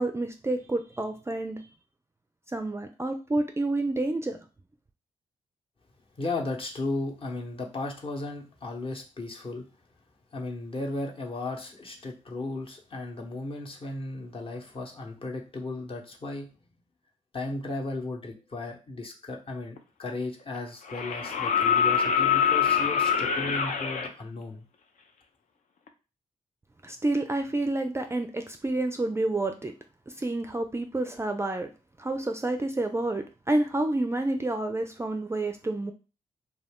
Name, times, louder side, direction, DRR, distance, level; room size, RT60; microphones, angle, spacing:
voice 1, 0.0-1.6 2.5-4.4 26.8-29.7 30.2-31.7 32.0-35.9, right 2 dB, 20° right, 6 dB, 0.4 m, -29 dB
voice 2, 6.2-9.6 10.3-16.5 17.3-24.6, left 2 dB, 40° left, 0 dB, 0.9 m, -35 dB
sound 1, 19.8-19.9 20.9-24.1 25.9-26.0, left 7 dB, 60° left, 0.5 m, -24 dB
2.4 x 2.3 x 3.5 m, 0.32 s
supercardioid pair, 45°, 15 cm